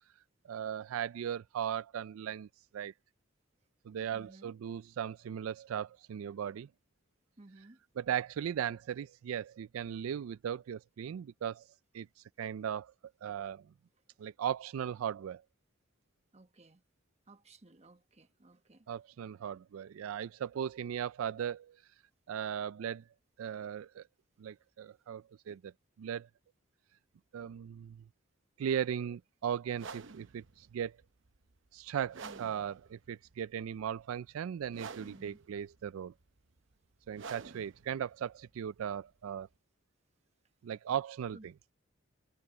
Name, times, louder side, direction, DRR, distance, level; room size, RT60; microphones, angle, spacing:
voice 1, 0.4-2.5 2.7-2.9 3.9-6.7 8.0-11.6 11.9-12.1 12.4-12.9 13.2-13.7 14.2-15.4 18.9-21.8 22.3-23.0 23.4-24.0 24.4-25.7 26.0-26.3 27.3-28.0 28.6-31.0 31.7-36.1 37.1-39.5 40.6-41.5, right 9 dB, 90° right, 0.3 m, -37 dB
voice 2, 4.1-4.5 7.4-7.8 16.3-16.8 17.3-18.9 32.2-32.5 35.0-35.4 41.3-41.5, right 2 dB, 30° right, 1.2 m, -56 dB
sound 1, 29.7-39.6, right 5 dB, 65° right, 0.8 m, -50 dB
head